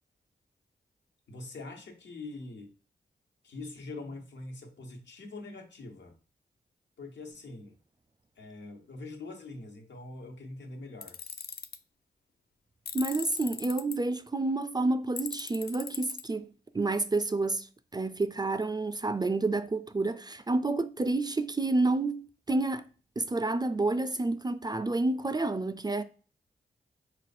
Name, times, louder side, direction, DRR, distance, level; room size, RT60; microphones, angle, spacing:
voice 1, 1.3-2.7 3.4-6.1 7.0-7.8 8.4-11.2, left 2 dB, 75° left, 1.1 m, -43 dB
Tools, 11.0-11.8 12.9-14.0 15.2-16.2, left 6 dB, 55° left, 0.5 m, -39 dB
voice 2, 12.9-16.5 16.7-17.7 17.9-22.9 23.2-26.0, right 2 dB, 20° right, 0.4 m, -29 dB
4.1 x 2.4 x 4.2 m
cardioid pair, 50°, 18 cm